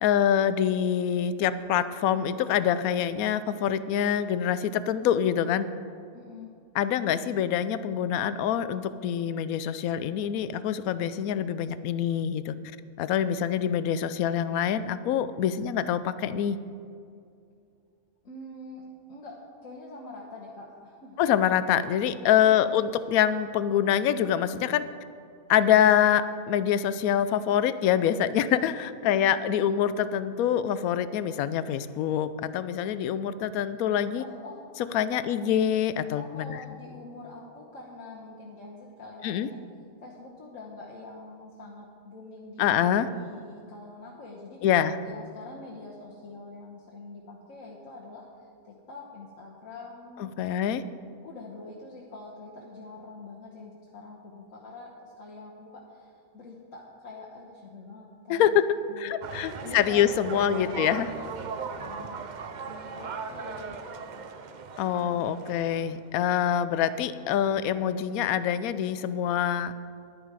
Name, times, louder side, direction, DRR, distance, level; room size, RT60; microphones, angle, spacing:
voice 1, 0.0-5.7 6.7-12.5 13.0-16.6 21.2-24.9 25.5-34.2 34.9-36.6 39.2-39.5 42.6-43.1 44.6-45.0 50.2-50.8 58.3-61.1 64.8-69.7, left 9 dB, 80° left, 14 dB, 1.0 m, -25 dB
voice 2, 6.1-6.5 18.2-21.2 22.4-22.8 29.0-29.8 34.2-34.6 35.1-35.2 36.1-39.6 40.0-44.6 45.0-50.3 51.2-58.6 58.9-62.2 62.6-65.2, left 3 dB, 65° left, -4 dB, 1.6 m, -45 dB
sound 1, 59.2-66.1, right 5 dB, 65° right, 0.4 m, -38 dB
11.5 x 10.0 x 4.7 m, 2.4 s
omnidirectional pair, 1.5 m